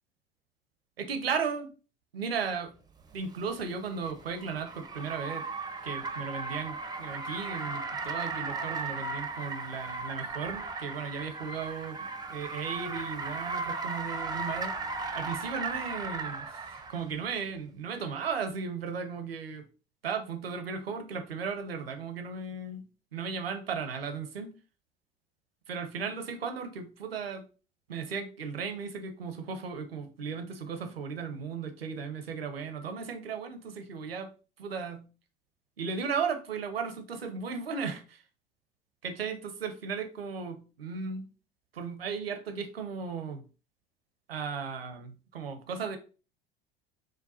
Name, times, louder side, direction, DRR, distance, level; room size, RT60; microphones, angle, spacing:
voice 1, 1.0-1.7 2.1-2.7 3.1-5.5 5.8-12.0 12.3-14.8 15.1-19.6 20.0-22.9 23.1-24.5 25.7-27.5 27.9-34.3 34.6-35.1 35.8-38.2 39.0-41.3 41.7-43.4 44.3-46.0, right 5 dB, 85° right, 0.7 m, -36 dB
Car, 3.1-17.1, right 3 dB, 15° right, 0.5 m, -36 dB
5.0 x 2.2 x 4.1 m
figure-of-eight pair, 70°, 29 cm